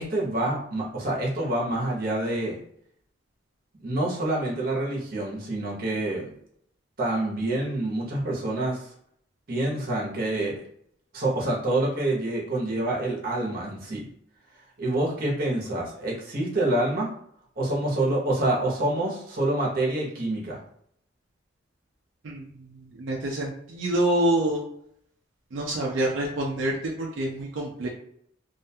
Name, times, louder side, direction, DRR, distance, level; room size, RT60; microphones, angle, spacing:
voice 1, 0.0-2.6 3.8-6.2 7.0-8.9 9.5-10.5 11.1-14.1 14.8-17.1 17.6-20.6, right 1 dB, 50° right, -3 dB, 0.8 m, -27 dB
voice 2, 23.0-24.6 25.5-27.9, right 1 dB, 80° right, -2 dB, 0.5 m, -26 dB
2.5 x 2.2 x 2.7 m, 0.67 s
head